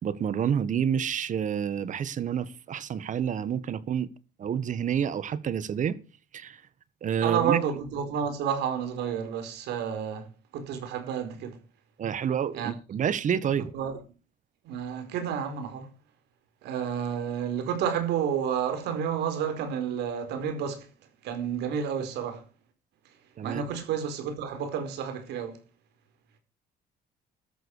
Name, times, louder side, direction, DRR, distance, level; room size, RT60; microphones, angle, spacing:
voice 1, 0.0-4.1 4.4-6.0 6.3-6.6 7.0-7.6 12.0-13.7 23.4-23.6, right 8 dB, 50° right, 1.6 m, -28 dB
voice 2, 7.2-10.3 10.5-11.6 12.5-12.7 13.6-14.0 14.6-15.9 16.6-20.9 21.2-22.4 23.4-25.6, right 8 dB, 80° right, 4.8 m, -30 dB
13.5 x 12.5 x 4.9 m
cardioid pair, 110°, 17 cm